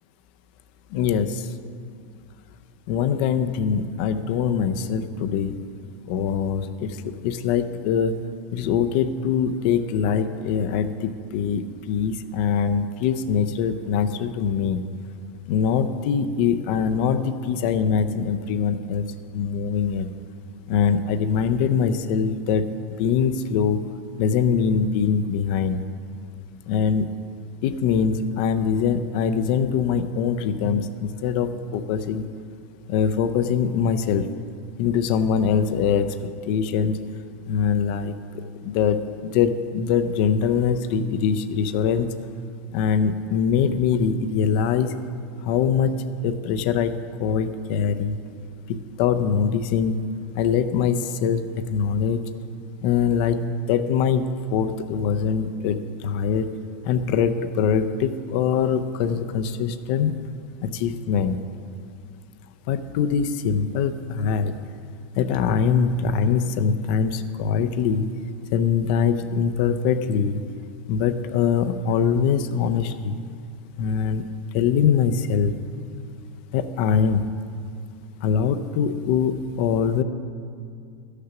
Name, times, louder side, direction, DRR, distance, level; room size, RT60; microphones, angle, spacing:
voice 1, 0.9-1.5 2.9-5.6 6.1-7.0 7.2-8.2 8.5-14.8 15.5-19.1 19.3-20.1 20.7-22.6 23.0-23.8 24.2-25.8 26.7-27.1 27.6-32.3 32.9-34.3 34.8-36.2 36.5-37.0 37.5-42.1 42.7-44.9 45.4-46.9 47.2-48.2 48.7-50.0 50.3-52.2 52.8-53.4 53.7-56.5 56.8-60.1 60.6-61.4 62.7-64.6 65.2-68.1 68.5-70.4 70.9-73.2 73.8-74.2 74.5-75.5 76.5-77.2 78.2-80.0, left 7 dB, 45° left, 9 dB, 0.6 m, -23 dB
13.5 x 6.6 x 5.9 m, 2.2 s
supercardioid pair, 175°, 7 cm